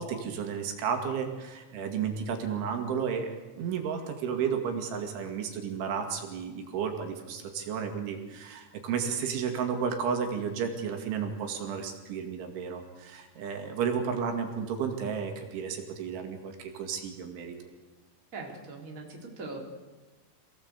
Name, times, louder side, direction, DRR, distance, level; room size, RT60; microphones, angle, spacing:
voice 1, 0.0-17.6, right 6 dB, 80° right, 4 dB, 4.7 m, -32 dB
voice 2, 18.3-19.6, right 3 dB, 20° right, 0 dB, 3.5 m, -41 dB
27.5 x 18.0 x 8.2 m, 1.2 s
omnidirectional pair, 5.3 m